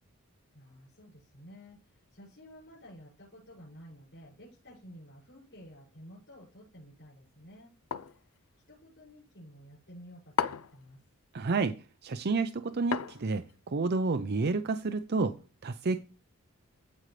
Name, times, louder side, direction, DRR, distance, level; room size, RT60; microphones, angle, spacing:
voice 1, 0.5-7.7 8.0-8.4 8.7-11.0, equal, 55° left, 6.4 m, -52 dB
sound 1, 7.9-8.2 10.4-10.8 12.9-13.5, left 7 dB, 75° left, 0.5 m, -33 dB
voice 2, 11.3-11.7 12.0-15.4 15.6-16.0, right 4 dB, 45° right, 0.5 m, -30 dB
15.5 x 5.3 x 3.3 m
head